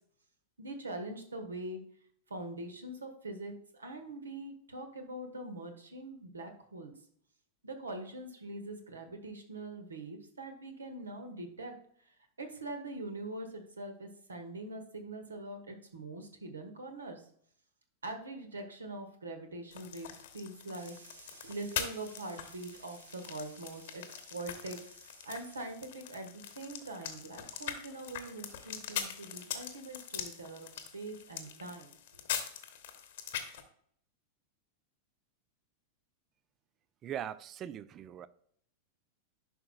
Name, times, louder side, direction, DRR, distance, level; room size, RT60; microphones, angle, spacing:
voice 1, 0.6-1.8 2.3-6.9 7.6-11.7 12.4-17.2 18.0-31.9, right 2 dB, 75° right, 6 dB, 1.3 m, -43 dB
sound 1, 19.7-33.6, left 9 dB, 55° left, 1.0 m, -42 dB
voice 2, 37.0-38.3, right 10 dB, 30° right, 16 dB, 0.4 m, -40 dB
10.5 x 5.7 x 2.3 m, 0.63 s
figure-of-eight pair, 90°, 0 cm